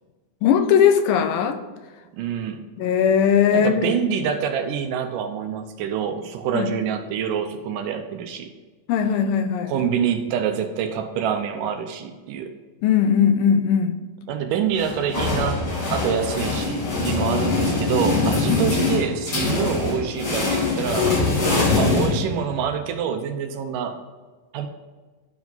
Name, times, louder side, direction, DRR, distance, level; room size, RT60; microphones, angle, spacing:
voice 1, 0.4-1.6 2.8-3.9 6.5-6.7 8.9-9.7 12.8-14.0 18.5-18.6, left 7 dB, 80° left, 7 dB, 2.4 m, -19 dB
voice 2, 2.2-2.6 3.5-8.5 9.7-12.5 14.3-15.6 15.9-21.2 21.7-24.0 24.5-24.7, right 7 dB, 80° right, 7 dB, 2.2 m, -26 dB
sound 1, 14.8-22.7, left 3 dB, 40° left, 2.9 m, -23 dB
12.0 x 4.8 x 3.9 m, 1.4 s
omnidirectional pair, 4.0 m